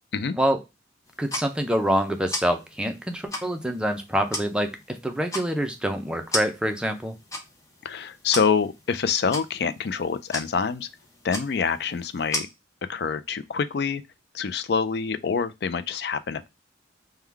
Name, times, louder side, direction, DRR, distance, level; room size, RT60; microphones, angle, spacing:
sound 1, 1.1-12.4, left 1 dB, 20° left, 0.8 m, -37 dB
voice 1, 1.2-7.2, equal, 5° right, 0.5 m, -26 dB
voice 2, 7.8-10.9 11.2-12.5 12.9-14.0 14.3-16.5, left 6 dB, 60° left, 0.4 m, -26 dB
3.6 x 2.2 x 4.5 m
head